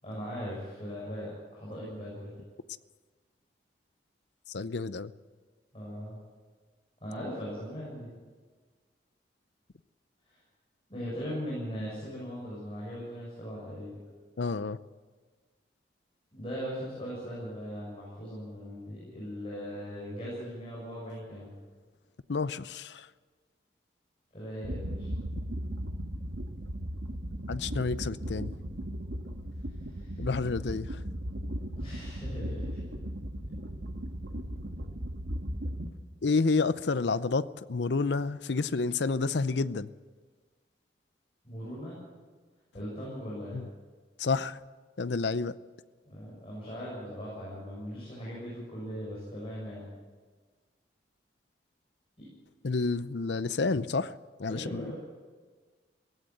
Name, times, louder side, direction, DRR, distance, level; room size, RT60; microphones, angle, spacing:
voice 1, 0.0-2.4 5.7-6.2 7.0-8.1 10.3-10.4 10.9-14.0 16.3-21.5 24.3-25.1 29.9-30.3 31.8-32.9 41.4-42.0 42.7-43.6 46.1-49.9 52.2-52.3 54.5-54.9, equal, 30° left, -6 dB, 7.2 m, -39 dB
voice 2, 4.5-5.1 14.4-14.8 22.3-23.1 27.5-28.5 30.2-31.0 36.2-39.9 43.5-43.7 44.2-44.6 45.0-45.6 52.6-54.1 54.4-54.9, left 4 dB, 80° left, 15 dB, 0.6 m, -29 dB
sound 1, 24.6-35.9, equal, 85° right, 1.6 m, -37 dB
17.5 x 16.0 x 9.2 m, 1.4 s
head